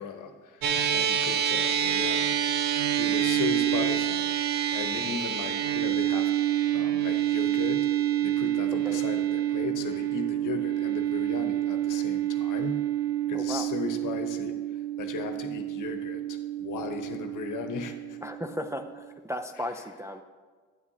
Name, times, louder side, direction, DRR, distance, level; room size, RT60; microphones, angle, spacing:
voice 1, 0.0-2.4 3.0-4.3 4.7-6.3 6.7-7.9 8.2-12.8 13.3-14.6 15.0-18.2, left 5 dB, 55° left, 6 dB, 1.0 m, -36 dB
sound 1, 0.6-19.2, right 11 dB, 70° right, 0.8 m, -28 dB
voice 2, 13.3-13.7 18.2-20.2, left 1 dB, 10° right, 5 dB, 0.3 m, -35 dB
9.6 x 8.3 x 2.8 m, 1.5 s
supercardioid pair, 65°, 36 cm